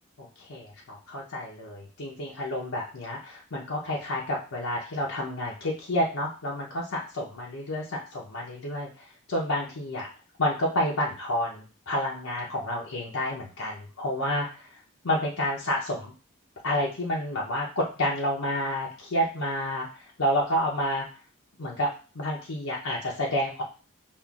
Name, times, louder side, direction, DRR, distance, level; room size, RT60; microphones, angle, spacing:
voice 1, 0.2-8.9 9.3-10.1 10.4-14.7 15.0-16.1 16.6-21.1 21.6-21.9 22.1-23.6, left 1 dB, 85° left, -3 dB, 0.7 m, -29 dB
5.4 x 2.5 x 2.4 m, 0.36 s
head